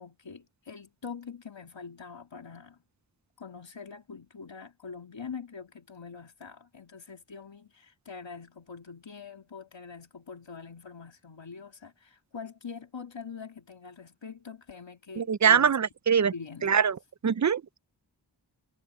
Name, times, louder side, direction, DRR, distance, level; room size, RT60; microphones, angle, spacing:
voice 1, 0.0-2.8 3.4-15.8 16.3-16.7, left 5 dB, 80° left, 1.9 m, -44 dB
voice 2, 15.2-16.3 16.6-17.0 17.2-17.6, right 7 dB, 40° right, 0.5 m, -23 dB
wide cardioid pair, 45°, 44 cm